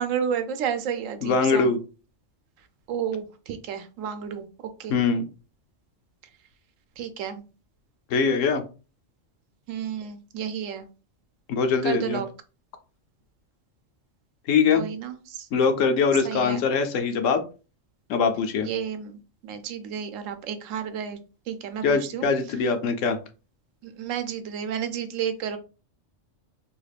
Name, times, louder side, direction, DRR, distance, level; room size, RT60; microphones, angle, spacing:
voice 1, 0.0-1.7 2.9-4.5 4.8-5.0 7.0-7.4 9.7-10.9 11.8-12.3 14.7-15.5 16.2-16.6 18.6-21.2 21.5-22.3 23.8-25.6, right 8 dB, 85° right, 9 dB, 1.0 m, -31 dB
voice 2, 1.2-1.8 4.9-5.2 8.1-8.6 11.5-12.2 14.5-14.8 15.5-17.4 18.1-18.7 21.8-23.2, left 5 dB, 80° left, 7 dB, 1.0 m, -22 dB
2.8 x 2.3 x 3.3 m, 0.33 s
omnidirectional pair, 1.3 m